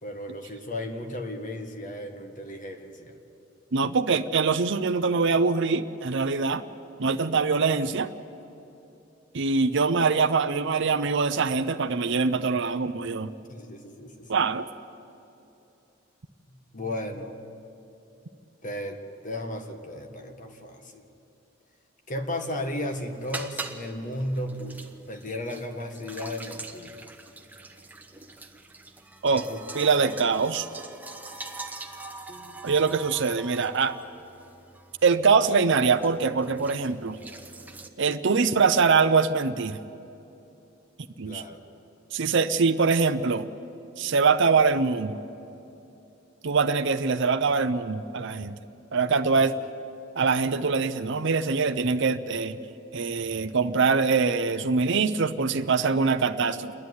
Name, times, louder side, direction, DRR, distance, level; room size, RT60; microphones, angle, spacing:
voice 1, 0.0-3.2 13.5-14.3 16.5-17.4 18.6-21.1 22.1-24.8 25.1-27.0 29.3-29.7 30.0-30.1 32.3-33.0 41.3-41.6 49.3-49.4, left 1 dB, 40° left, 5 dB, 1.7 m, -35 dB
voice 2, 3.7-6.6 7.0-8.1 9.3-13.3 14.3-14.7 29.2-29.4 29.7-30.7 32.6-33.9 35.0-37.2 38.0-39.8 41.2-41.4 42.1-43.5 44.0-45.2 46.4-48.6 48.9-49.5 50.2-52.6 52.9-56.7, right 4 dB, 65° right, 8 dB, 0.7 m, -23 dB
sound 1, 22.4-37.9, right 3 dB, 10° right, 1.0 m, -43 dB
29.0 x 10.5 x 9.7 m, 2.9 s
head